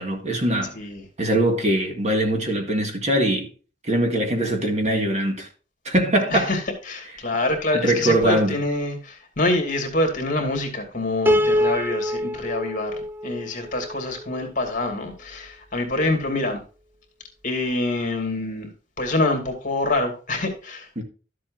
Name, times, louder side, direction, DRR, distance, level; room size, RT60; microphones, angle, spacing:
voice 1, 0.0-0.7 1.2-3.5 3.8-5.5 5.9-6.5 7.7-8.6 21.0-21.1, right 1 dB, 40° right, 1.9 m, -22 dB
voice 2, 0.7-1.1 6.3-16.6 17.4-18.7 19.0-21.0, left 2 dB, 45° left, 2.5 m, -26 dB
Piano, 11.3-14.5, left 1 dB, 10° right, 0.4 m, -24 dB
12.5 x 7.6 x 2.6 m
head